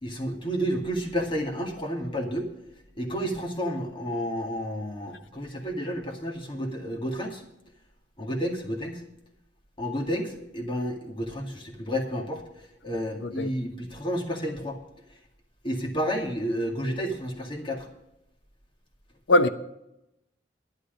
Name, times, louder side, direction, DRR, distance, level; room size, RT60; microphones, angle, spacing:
voice 1, 0.0-2.5 3.0-7.4 8.2-9.0 9.8-12.4 12.8-14.8 15.6-17.9, equal, 30° left, 2.1 m, -31 dB
voice 2, 13.2-13.5 19.3-19.5, left 1 dB, 75° left, 0.8 m, -20 dB
11.5 x 10.0 x 5.2 m
head